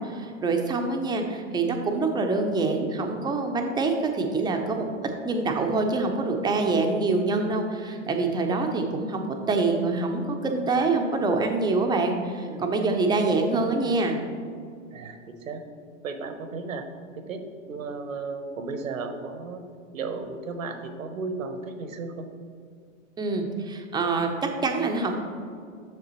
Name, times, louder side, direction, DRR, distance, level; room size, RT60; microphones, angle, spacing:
voice 1, 0.0-4.9 5.2-14.2 23.2-25.1, right 3 dB, 10° right, 3 dB, 0.5 m, -25 dB
voice 2, 14.9-15.6 16.0-16.8 17.1-19.6 19.9-22.3, right 4 dB, 75° right, 7 dB, 0.9 m, -35 dB
7.8 x 6.5 x 2.9 m, 2.3 s
figure-of-eight pair, 100°, 40 cm